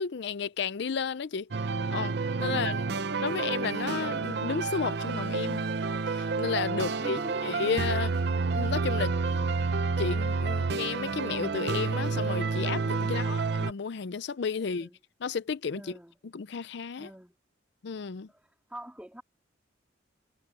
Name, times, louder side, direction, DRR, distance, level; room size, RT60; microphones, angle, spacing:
voice 1, 0.0-1.5 1.9-2.8 3.2-5.6 6.1-8.2 8.5-9.5 10.0-14.9 15.2-16.0 16.3-17.1 17.8-18.3, left 5 dB, 60° left, 0.5 m, -33 dB
sound 1, 1.5-13.7, right 4 dB, 60° right, 0.7 m, -29 dB
voice 2, 2.4-3.2 6.8-7.6 13.0-13.5 14.8-15.0 15.7-16.2 17.0-17.3 18.7-19.2, equal, 5° right, 2.6 m, -45 dB
head